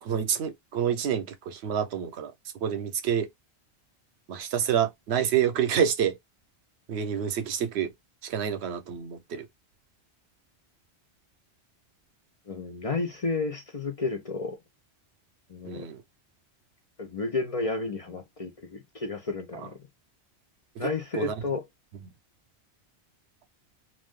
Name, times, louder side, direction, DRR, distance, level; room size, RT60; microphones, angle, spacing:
voice 1, 0.0-3.3 4.3-6.2 6.9-7.9 8.2-9.5 15.6-16.0 19.5-19.7 20.8-21.3, right 8 dB, 85° right, 0.9 m, -28 dB
voice 2, 12.5-14.6 15.5-15.9 17.0-19.8 20.8-21.6, left 3 dB, 45° left, 0.5 m, -32 dB
2.6 x 2.3 x 3.5 m
omnidirectional pair, 1.1 m